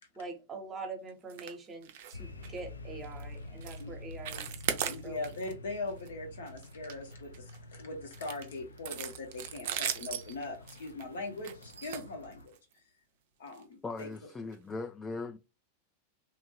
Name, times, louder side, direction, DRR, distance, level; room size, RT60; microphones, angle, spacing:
voice 1, 0.1-4.5 4.8-5.3, right 3 dB, 20° right, 0.9 m, -44 dB
sound 1, 1.3-1.6 1.8-2.2 2.4-2.6 3.0-3.2 3.6-3.8 4.1-5.5 5.9-6.1 6.5-7.6 8.1-12.7 13.5-13.6 14.0-14.1 14.5-14.6, right 9 dB, 50° right, 0.4 m, -38 dB
sound 2, 2.1-12.5, left 1 dB, 80° left, 0.5 m, -48 dB
voice 2, 4.8-12.8 13.4-14.1, left 2 dB, 60° left, 0.9 m, -41 dB
voice 3, 13.8-15.4, left 3 dB, 15° left, 0.3 m, -39 dB
2.8 x 2.5 x 2.9 m
figure-of-eight pair, 90°, 0 cm